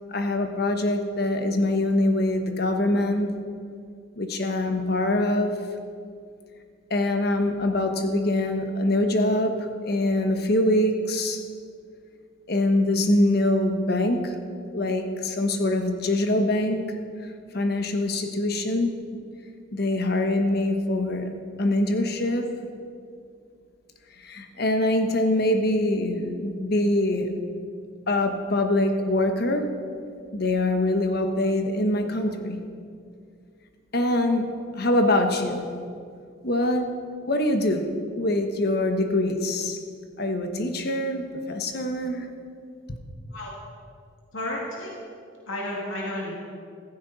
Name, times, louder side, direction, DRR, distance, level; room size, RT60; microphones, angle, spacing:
voice 1, 0.1-3.4 4.2-5.6 6.9-11.5 12.5-14.4 14.7-16.8 17.2-18.9 19.7-21.3 21.6-22.6 24.2-27.3 28.1-29.7 30.3-32.6 33.9-35.7 36.4-37.0 37.3-39.8 40.2-42.3, left 1 dB, 50° left, 5 dB, 1.2 m, -24 dB
voice 2, 44.3-44.9 45.5-46.3, left 1 dB, 85° left, -3 dB, 2.3 m, -32 dB
15.5 x 15.0 x 4.1 m, 2.3 s
head